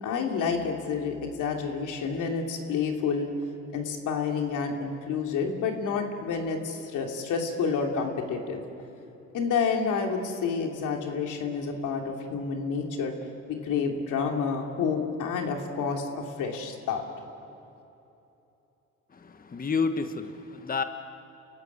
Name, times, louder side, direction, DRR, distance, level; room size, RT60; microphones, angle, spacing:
voice 1, 0.0-3.3 3.7-8.6 9.3-13.1 13.5-17.0, left 5 dB, 85° left, 2 dB, 3.0 m, -29 dB
voice 2, 19.2-20.8, left 5 dB, 30° left, 8 dB, 1.2 m, -29 dB
28.5 x 15.0 x 10.0 m, 2.9 s
cardioid pair, 90°, 30 cm